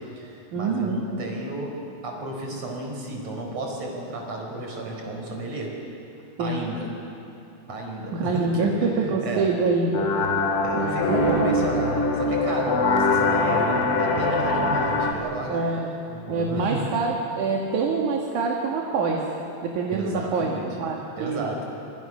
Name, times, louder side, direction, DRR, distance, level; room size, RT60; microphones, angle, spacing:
voice 1, 0.0-5.8 6.4-6.9 7.7-9.5 10.6-15.6 16.1-17.0 19.9-20.8 21.2-21.7, right 2 dB, 40° right, 0 dB, 5.4 m, -32 dB
voice 2, 0.5-1.0 6.4-6.7 8.1-10.1 10.7-11.5 15.5-15.9 16.3-19.2 19.6-20.5 20.8-21.5, right 4 dB, 55° right, -1 dB, 2.9 m, -25 dB
sound 1, 9.9-15.1, left 3 dB, 45° left, 2.0 m, -23 dB
27.0 x 26.0 x 6.2 m, 2.9 s
omnidirectional pair, 4.6 m